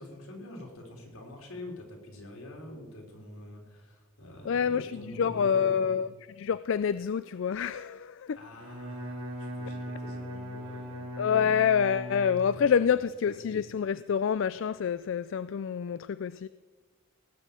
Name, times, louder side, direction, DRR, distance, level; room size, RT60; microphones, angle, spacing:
voice 1, 0.0-6.0 8.3-11.3 12.5-12.7 13.3-13.4, left 1 dB, 80° left, 1 dB, 3.5 m, -46 dB
voice 2, 4.5-6.1 6.4-8.4 11.2-16.5, left 7 dB, 60° left, 15 dB, 0.3 m, -27 dB
Bowed string instrument, 8.5-12.8, equal, 75° right, 2.9 m, -39 dB
18.0 x 6.3 x 8.7 m, 1.3 s
head